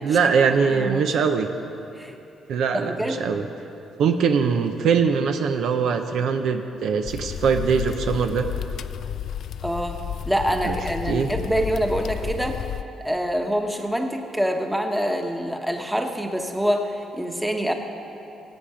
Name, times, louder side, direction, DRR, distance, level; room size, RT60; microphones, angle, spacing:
voice 1, 0.0-1.5 2.5-3.4 4.0-8.5 10.6-10.8 11.1-11.3, right 6 dB, 75° right, 7 dB, 0.6 m, -22 dB
voice 2, 0.7-1.1 2.0-2.1 2.8-3.2 9.6-12.6 13.0-17.7, equal, 5° right, 4 dB, 1.1 m, -26 dB
sound 1, 7.0-12.8, left 9 dB, 70° left, 0.3 m, -32 dB
16.0 x 8.7 x 5.0 m, 2.8 s
cardioid pair, 90°, 0 cm